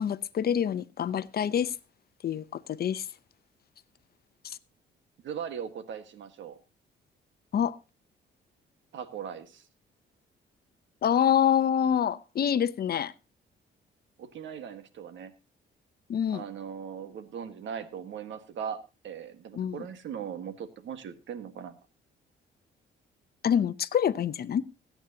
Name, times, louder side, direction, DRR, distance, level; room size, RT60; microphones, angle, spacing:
voice 1, 0.0-1.8 2.2-3.1 4.4-4.6 7.5-7.8 11.0-13.1 16.1-16.4 19.5-19.9 23.4-24.6, left 9 dB, 50° left, 0.7 m, -26 dB
voice 2, 5.2-6.6 8.9-9.6 14.2-15.3 16.3-21.7, right 8 dB, 70° right, 1.6 m, -39 dB
21.0 x 9.1 x 2.8 m
cardioid pair, 90°, 20 cm